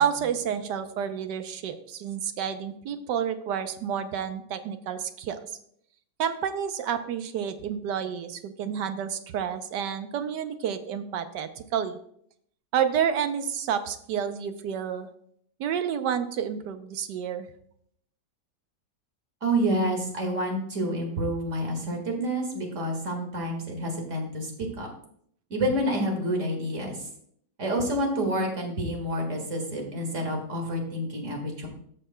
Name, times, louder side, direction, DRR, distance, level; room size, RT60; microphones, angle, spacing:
voice 1, 0.0-5.4 6.2-12.0 12.7-15.1 15.6-17.5, right 8 dB, 75° right, 9 dB, 1.3 m, -29 dB
voice 2, 19.4-24.9 25.5-27.0 27.6-31.7, right 1 dB, 45° right, 2 dB, 2.0 m, -28 dB
14.0 x 6.5 x 2.2 m, 0.67 s
omnidirectional pair, 1.9 m